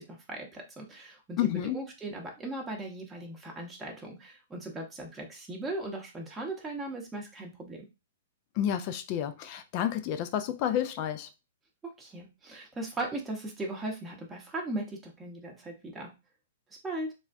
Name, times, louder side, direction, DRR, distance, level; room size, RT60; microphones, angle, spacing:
voice 1, 0.0-7.9 11.8-16.1 16.8-17.1, right 2 dB, 10° right, 0.8 m, -38 dB
voice 2, 1.4-1.8 8.6-11.3, left 10 dB, 40° left, 0.4 m, -30 dB
3.4 x 2.1 x 2.5 m
hypercardioid pair, 120°, 0 cm